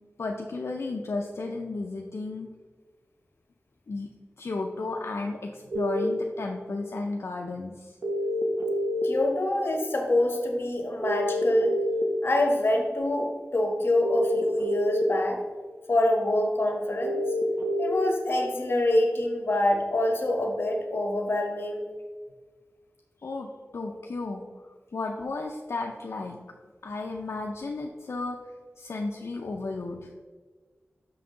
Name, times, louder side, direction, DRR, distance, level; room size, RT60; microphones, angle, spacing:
voice 1, 0.2-2.5 3.9-4.1 4.4-8.0 23.2-23.5 23.7-24.4 24.9-26.4 26.8-28.4 28.8-30.1, left 3 dB, 75° left, 1 dB, 0.5 m, -33 dB
sound 1, 5.7-6.0 8.0-9.0 11.0-12.0 14.0-15.0 17.0-17.9, equal, 90° right, 1.0 m, -28 dB
voice 2, 9.0-11.7 12.2-15.4 15.9-17.2 17.8-21.8, left 1 dB, 55° left, 2 dB, 1.3 m, -25 dB
6.1 x 5.7 x 3.8 m, 1.5 s
wide cardioid pair, 85°, 5 cm